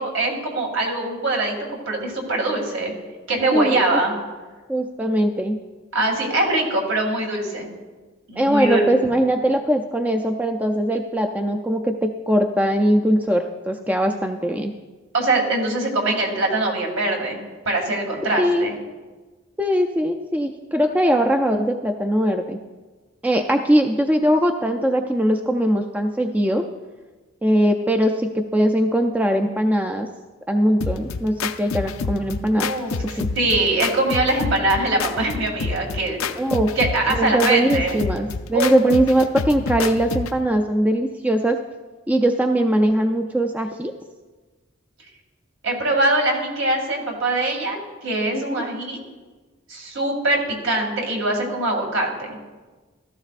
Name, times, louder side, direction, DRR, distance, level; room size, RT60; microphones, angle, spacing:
voice 1, 0.0-1.5 1.9-2.9 3.3-4.1 5.9-7.7 8.3-8.8 15.1-18.8 23.3-23.4 32.6-36.2 36.8-38.0 38.5-38.7 45.6-49.0 49.7-52.4, right 2 dB, 70° right, 0 dB, 2.4 m, -23 dB
voice 2, 3.5-4.0 4.7-5.6 8.4-14.7 18.3-18.7 19.6-22.6 23.2-26.7 27.4-30.1 30.5-32.7 33.2-33.3 36.3-36.7 37.1-41.6 42.1-43.9 48.3-48.6, right 1 dB, 5° right, 5 dB, 0.3 m, -21 dB
sound 1, 30.8-40.4, left 4 dB, 85° left, 0.5 m, -28 dB
15.5 x 13.5 x 2.5 m, 1.3 s
head